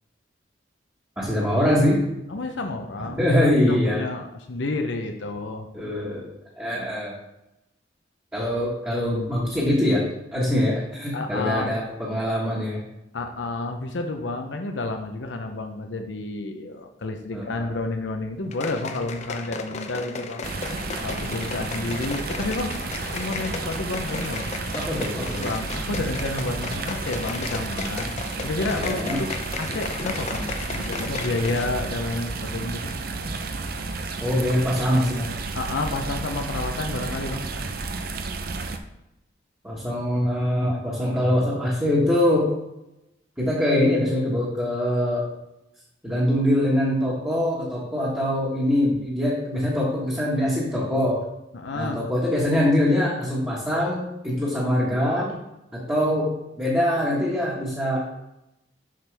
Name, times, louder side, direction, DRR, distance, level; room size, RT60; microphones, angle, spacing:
voice 1, 1.2-2.1 3.2-4.0 5.7-7.2 8.3-12.8 17.3-17.7 24.7-25.5 28.7-29.2 34.2-35.3 39.6-42.5 43.4-45.3 46.0-51.2 51.7-55.3 55.7-58.0, left 1 dB, 10° right, -8 dB, 1.5 m, -23 dB
voice 2, 2.3-6.0 11.1-11.7 13.1-20.5 21.0-22.8 23.1-24.5 25.2-28.1 28.4-29.3 29.6-32.9 35.5-37.5 51.5-52.0, left 2 dB, 75° left, 5 dB, 0.7 m, -30 dB
sound 1, 18.5-31.8 32.1-32.2, left 4 dB, 35° left, 0.5 m, -35 dB
sound 2, 20.4-38.8, right 3 dB, 50° right, 0.6 m, -32 dB
7.5 x 6.0 x 3.4 m, 0.91 s
head